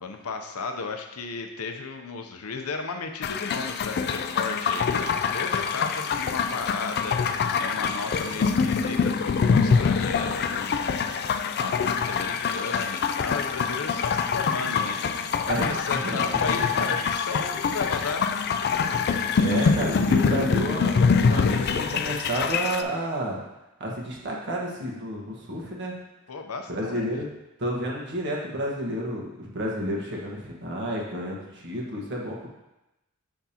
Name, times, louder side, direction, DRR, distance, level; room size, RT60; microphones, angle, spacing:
voice 1, 0.0-11.1 11.4-18.3 26.3-27.1, left 4 dB, 85° left, 5 dB, 0.7 m, -34 dB
sound 1, 3.2-22.8, left 5 dB, 50° left, 0.3 m, -25 dB
voice 2, 15.5-16.2 16.5-16.9 19.4-23.4 23.8-25.9 26.7-27.2 27.6-32.5, right 1 dB, 55° right, -2 dB, 1.4 m, -31 dB
6.8 x 6.0 x 2.9 m, 0.96 s
head